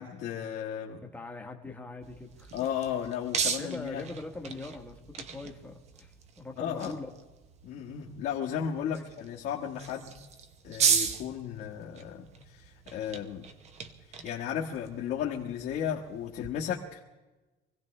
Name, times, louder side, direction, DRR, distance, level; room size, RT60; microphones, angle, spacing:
voice 1, 0.0-1.0 2.5-4.0 6.6-6.9 7.6-10.1 10.6-13.5 14.2-17.0, left 9 dB, 55° left, -2 dB, 1.4 m, -34 dB
voice 2, 1.0-2.5 3.6-7.1 8.9-9.1, left 2 dB, 10° left, 2 dB, 1.2 m, -42 dB
sound 1, 2.0-16.5, right 6 dB, 35° right, 0.9 m, -36 dB
24.0 x 16.5 x 3.3 m, 1.2 s
cardioid pair, 170°, 19 cm